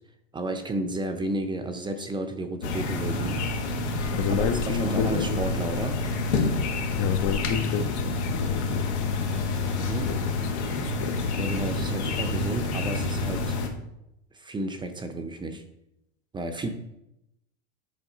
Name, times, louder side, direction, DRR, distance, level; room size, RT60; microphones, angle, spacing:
voice 1, 0.3-3.5 4.3-6.1 9.8-10.1 11.4-13.6 14.3-15.6 16.3-16.7, right 1 dB, 15° right, 7 dB, 0.6 m, -32 dB
sound 1, 2.6-13.7, left 3 dB, 80° left, 1.2 m, -28 dB
voice 2, 4.1-5.5 6.9-9.1 10.1-10.3 10.6-11.4, left 7 dB, 40° left, 9 dB, 0.7 m, -30 dB
7.4 x 4.6 x 3.9 m, 0.85 s
hypercardioid pair, 105°, 33 cm